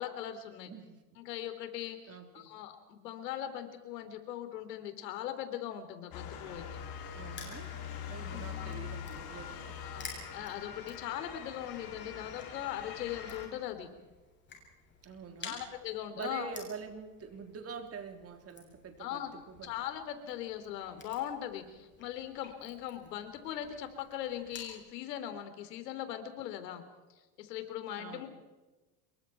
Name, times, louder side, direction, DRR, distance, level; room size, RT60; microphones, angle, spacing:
voice 1, 0.0-0.7 1.2-6.6 8.2-8.7 9.8-13.9 15.4-16.5 19.0-19.3 19.6-26.8 27.4-28.3, left 11 dB, 90° left, 8 dB, 3.6 m, -40 dB
voice 2, 0.7-1.0 2.1-2.5 7.1-9.8 15.0-15.6 16.1-19.8 28.0-28.3, right 6 dB, 30° right, 5 dB, 3.7 m, -45 dB
Motor vehicle (road) / Siren, 6.1-13.5, left 8 dB, 50° left, 5.6 m, -43 dB
Crushing, 6.2-24.8, left 4 dB, 25° left, 7.1 m, -54 dB
27.0 x 23.0 x 4.6 m, 1.2 s
supercardioid pair, 130°, 47 cm